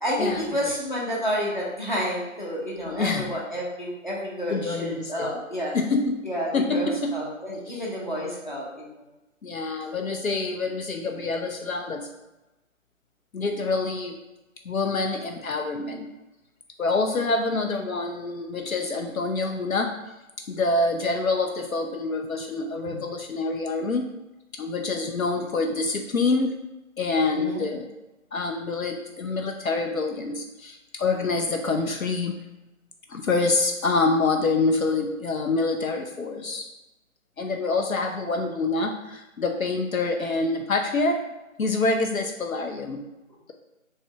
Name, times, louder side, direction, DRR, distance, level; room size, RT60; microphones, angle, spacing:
voice 1, 0.0-5.7 6.2-9.0 22.9-23.0 27.3-27.6, equal, 35° left, -5 dB, 0.8 m, -30 dB
voice 2, 2.9-3.3 4.5-5.4 5.7-6.3 6.5-7.2 7.7-7.8 9.4-12.1 13.3-14.2 14.7-16.1 16.8-19.9 20.5-24.2 24.6-26.5 27.0-27.9 28.3-32.4 33.1-36.6 37.4-41.3 41.6-43.0, left 3 dB, 75° left, 3 dB, 0.5 m, -26 dB
3.2 x 2.8 x 4.5 m, 1.0 s
figure-of-eight pair, 170°, 42 cm